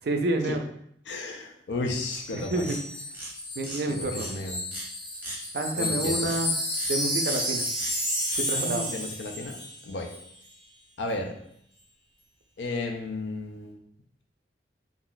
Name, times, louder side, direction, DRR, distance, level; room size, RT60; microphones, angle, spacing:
voice 1, 0.1-0.6 2.3-2.8 3.6-4.3 5.5-6.5 6.9-7.7 8.4-8.9, right 2 dB, 60° right, 5 dB, 0.4 m, -28 dB
voice 2, 1.1-2.7 3.8-4.6 5.7-6.3 8.5-9.6 9.8-10.1 11.0-11.4 12.6-13.8, left 2 dB, 85° left, 2 dB, 0.5 m, -33 dB
sound 1, 2.0-3.5, left 3 dB, 20° left, 0.7 m, -46 dB
sound 2, 2.1-2.3 2.6-2.8 3.1-3.3 3.6-3.8 4.2-4.3 4.7-4.8 5.1-5.4 6.2-6.4 6.7-6.9 7.2-7.4 7.7-7.9 8.2-8.4, right 1 dB, 10° right, 0.8 m, -39 dB
Wind chime, 2.6-9.8 10.1-10.3, equal, 45° left, 1.0 m, -31 dB
2.4 x 2.1 x 3.7 m, 0.69 s
head